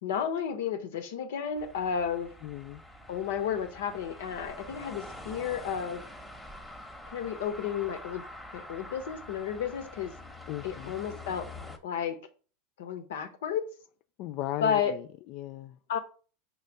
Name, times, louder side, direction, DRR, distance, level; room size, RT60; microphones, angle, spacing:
voice 1, 0.0-2.3 3.1-6.0 7.1-8.2 8.5-10.1 10.6-11.5 11.8-12.2 12.8-13.7 14.6-14.9 15.9-16.0, left 7 dB, 85° left, 1.2 m, -32 dB
sound 1, 1.6-11.8, left 1 dB, 5° left, 1.1 m, -46 dB
voice 2, 2.4-2.8 10.5-10.9 14.2-15.8, left 14 dB, 50° left, 0.3 m, -37 dB
6.7 x 3.2 x 5.3 m
supercardioid pair, 135°, 0 cm